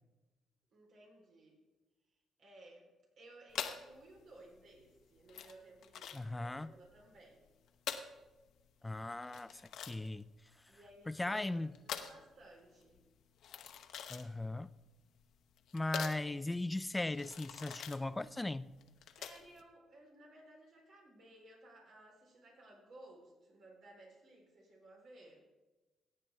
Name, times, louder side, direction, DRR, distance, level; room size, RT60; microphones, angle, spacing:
voice 1, 0.7-1.6 2.4-2.9 3.2-7.4 10.7-11.6 11.8-13.0 19.2-25.4, right 1 dB, 70° right, 3.8 m, -58 dB
sound 1, 3.5-19.6, left 8 dB, 80° left, 0.8 m, -46 dB
voice 2, 6.1-6.7 8.8-10.3 11.1-11.7 14.1-14.7 15.7-18.7, left 2 dB, 15° left, 0.4 m, -38 dB
17.0 x 8.6 x 3.4 m
cardioid pair, 90°, 0 cm